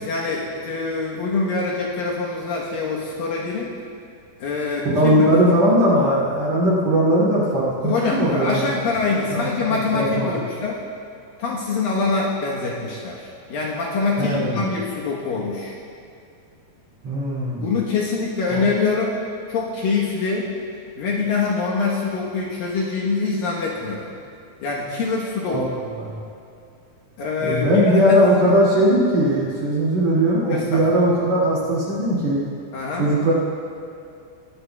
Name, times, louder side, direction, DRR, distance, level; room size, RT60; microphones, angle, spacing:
voice 1, 0.0-3.7 4.4-5.3 7.8-10.8 11.4-15.8 17.6-19.2 19.5-20.5 21.0-24.1 24.6-25.6 27.2-28.2 30.5-30.9 32.7-33.1, left 4 dB, 70° left, -4 dB, 2.5 m, -24 dB
voice 2, 4.8-8.6 9.3-10.3 14.2-14.6 17.0-17.7 18.5-18.6 25.4-25.6 26.0-26.2 27.4-32.4 32.9-33.3, equal, 45° right, -8 dB, 3.0 m, -19 dB
20.5 x 14.5 x 2.3 m, 2.5 s
omnidirectional pair, 4.9 m